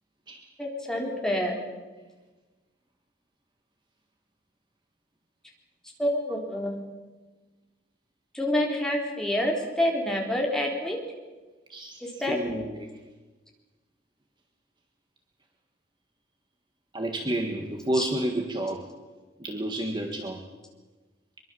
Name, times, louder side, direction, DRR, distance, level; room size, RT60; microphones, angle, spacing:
voice 1, 0.6-1.6 6.0-6.8 8.3-11.0 12.0-12.4 17.9-18.1, left 1 dB, 5° left, -1 dB, 3.9 m, -27 dB
voice 2, 12.3-12.9 16.9-18.9 19.4-20.4, right 1 dB, 25° right, 3 dB, 1.7 m, -30 dB
23.5 x 23.5 x 7.1 m, 1.2 s
head